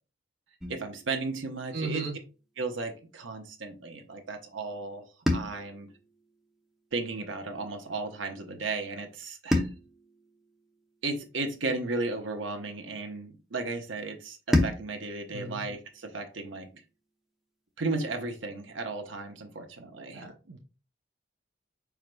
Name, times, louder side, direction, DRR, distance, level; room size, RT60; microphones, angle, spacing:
sound 1, 0.6-2.8 5.3-7.6 9.5-12.0 14.5-17.1, left 1 dB, ahead, 0.7 m, -34 dB
voice 1, 0.7-2.1 2.6-5.9 6.9-9.7 11.0-16.7 17.8-20.2, right 3 dB, 90° right, 6 dB, 0.9 m, -35 dB
voice 2, 1.7-2.2 15.3-15.6 20.1-20.6, right 4 dB, 65° right, 1 dB, 0.6 m, -36 dB
5.0 x 4.7 x 2.2 m, 0.33 s
head